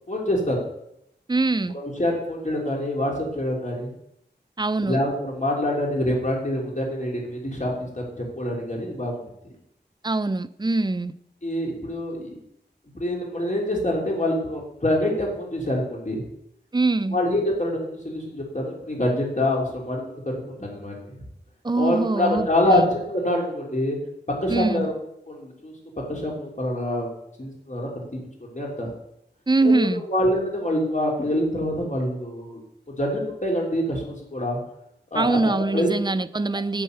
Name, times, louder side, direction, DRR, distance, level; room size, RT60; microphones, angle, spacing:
voice 1, 0.1-0.6 1.7-3.9 4.8-9.2 11.4-12.3 12.9-16.3 17.1-21.0 21.7-24.0 24.4-24.9 25.3-25.7 26.1-28.9 29.6-32.6 33.0-34.6 35.1-35.4 35.7-35.9, left 1 dB, 45° left, 3.3 m, -26 dB
voice 2, 1.3-1.8 4.6-5.0 10.0-11.1 16.7-17.2 21.6-22.9 24.5-24.9 29.5-30.0 35.1-36.8, right 3 dB, 25° right, 0.5 m, -23 dB
8.7 x 7.7 x 6.8 m
wide cardioid pair, 45°, 18 cm